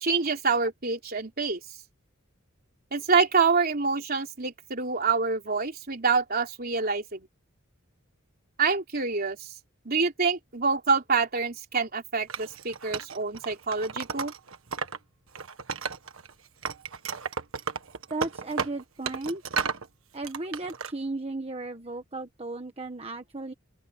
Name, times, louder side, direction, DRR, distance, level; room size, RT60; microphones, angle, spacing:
voice 1, 0.0-1.6 2.9-7.3 8.6-9.4 9.8-14.3, right 4 dB, 50° right, 3.3 m, -26 dB
Wood, 12.3-15.0 15.3-16.3 16.6-19.9 20.2-20.9, right 5 dB, 80° right, 1.5 m, -33 dB
voice 2, 18.1-19.4 20.1-23.5, right 2 dB, 30° right, 1.3 m, -35 dB
open air
head